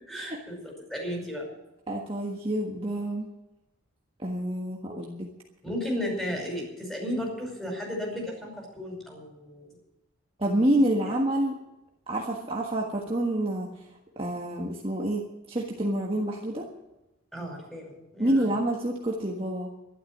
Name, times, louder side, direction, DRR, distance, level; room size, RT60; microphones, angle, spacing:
voice 1, 0.0-1.5 5.6-9.7 10.8-10.9 17.3-18.5, equal, ahead, 0 dB, 5.3 m, -34 dB
voice 2, 1.9-3.3 4.2-5.3 10.4-11.6 12.1-13.7 14.2-16.7 18.2-19.7, right 1 dB, 25° right, -1 dB, 1.5 m, -28 dB
12.5 x 12.0 x 7.5 m, 0.94 s
head